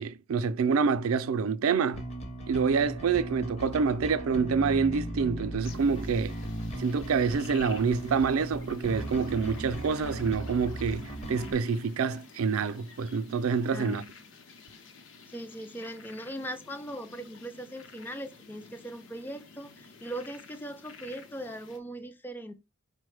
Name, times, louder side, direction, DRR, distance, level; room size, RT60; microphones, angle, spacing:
voice 1, 0.0-2.1 2.5-6.3 6.8-14.0, right 5 dB, 85° right, 0.4 m, -27 dB
Bass guitar, 1.9-11.5, right 1 dB, 30° left, 0.7 m, -37 dB
sound 1, 5.6-21.8, left 4 dB, 65° left, 0.7 m, -51 dB
voice 2, 13.7-14.1 15.3-22.5, right 1 dB, 10° left, 0.3 m, -40 dB
4.9 x 2.1 x 4.7 m
head